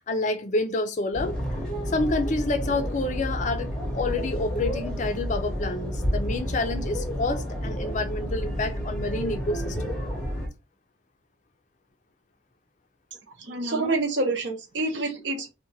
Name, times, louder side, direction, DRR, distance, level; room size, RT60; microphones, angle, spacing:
voice 1, 0.1-1.4 1.9-10.0, left 2 dB, 40° left, 0.4 m, -28 dB
sound 1, 1.1-10.5, equal, 5° left, 0.7 m, -30 dB
voice 2, 13.4-15.5, right 2 dB, 65° right, 0.7 m, -27 dB
2.8 x 2.2 x 2.6 m
head